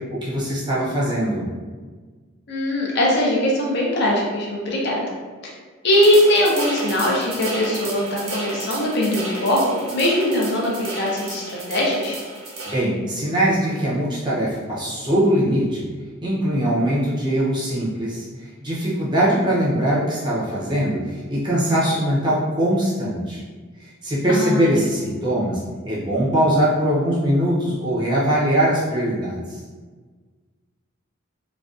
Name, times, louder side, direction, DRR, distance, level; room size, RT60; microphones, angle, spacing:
voice 1, 0.1-1.5 12.6-15.8 16.2-23.4 23.8-29.6, right 1 dB, 20° right, -7 dB, 0.5 m, -21 dB
voice 2, 2.5-5.0 5.8-9.6 9.9-12.2 24.3-24.9, left 1 dB, 50° left, -3 dB, 0.5 m, -21 dB
sound 1, 5.9-12.8, right 2 dB, 85° right, 0.6 m, -32 dB
2.4 x 2.2 x 2.4 m, 1.4 s
head